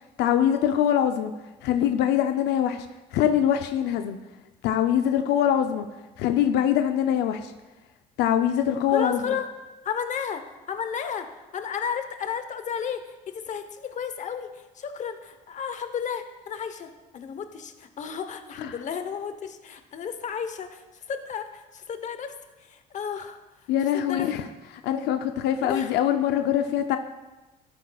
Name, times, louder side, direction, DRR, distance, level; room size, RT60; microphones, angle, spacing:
voice 1, 0.2-1.3 1.6-2.9 3.1-4.2 4.6-5.9 6.2-7.5 8.2-9.3 18.6-18.8 23.7-24.4 24.8-27.0, left 10 dB, 80° left, 7 dB, 0.5 m, -23 dB
voice 2, 8.9-9.4 9.8-10.4 10.7-22.3 22.7-23.4 23.9-24.4 25.6-25.9, left 7 dB, 45° left, 9 dB, 0.9 m, -33 dB
12.5 x 8.9 x 2.3 m, 1.1 s
cardioid pair, 110°, 17 cm